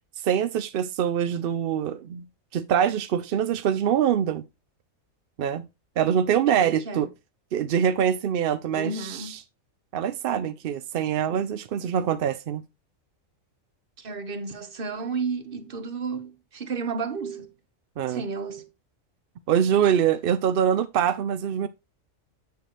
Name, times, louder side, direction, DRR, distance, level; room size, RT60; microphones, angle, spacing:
voice 1, 0.2-2.2 2.5-4.4 5.4-5.7 6.0-7.1 7.5-9.4 9.9-12.6 18.0-18.2 19.5-21.7, right 9 dB, 65° right, 0.5 m, -24 dB
voice 2, 6.5-7.1 8.7-9.4 14.0-17.5 18.1-18.7, right 4 dB, 45° right, 1.2 m, -32 dB
7.9 x 6.9 x 3.0 m
omnidirectional pair, 1.4 m